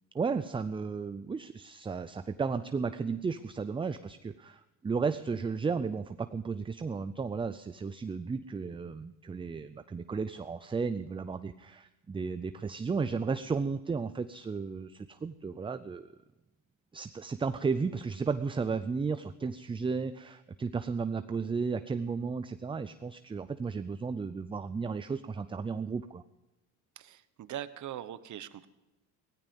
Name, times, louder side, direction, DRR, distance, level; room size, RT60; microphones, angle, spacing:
voice 1, 0.1-16.1 16.9-26.2, right 5 dB, 15° right, 11 dB, 0.4 m, -34 dB
voice 2, 27.0-28.7, right 11 dB, 45° right, 13 dB, 1.1 m, -41 dB
17.0 x 14.0 x 5.3 m, 1.0 s
cardioid pair, 105°, 39 cm